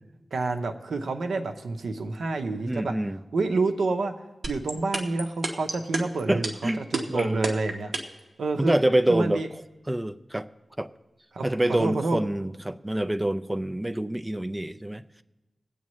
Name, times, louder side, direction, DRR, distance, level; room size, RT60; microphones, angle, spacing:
voice 1, 0.3-2.9 3.3-4.1 4.5-7.9 8.4-8.7 9.1-9.5 11.3-12.2, right 3 dB, 90° right, 5 dB, 0.8 m, -28 dB
voice 2, 2.6-3.2 6.3-7.5 8.6-9.4 9.9-10.5 10.8-10.9 11.4-15.2, right 1 dB, 15° right, 12 dB, 0.5 m, -26 dB
sound 1, 4.4-8.2, right 3 dB, 65° right, 1.2 m, -28 dB
20.5 x 8.5 x 3.1 m, 1.1 s
wide cardioid pair, 75°, 0 cm